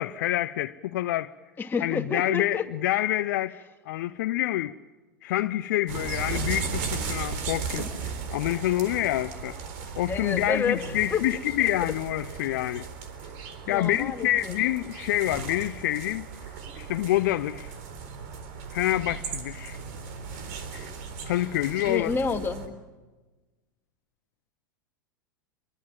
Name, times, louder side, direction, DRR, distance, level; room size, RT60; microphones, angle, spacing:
voice 1, 0.0-1.3 1.8-4.8 5.2-7.9 8.3-9.6 10.0-12.9 13.7-16.3 16.8-17.7 18.7-19.8 20.7-20.9 21.3-22.1, left 14 dB, 60° left, 0.7 m, -27 dB
voice 2, 1.6-2.6 10.1-11.2 11.6-11.7 13.6-14.5 21.8-22.6, left 5 dB, 20° left, 2.5 m, -29 dB
sound 1, 5.9-22.7, right 5 dB, 55° right, 4.0 m, -36 dB
28.0 x 23.0 x 7.5 m
figure-of-eight pair, 90°, 11 cm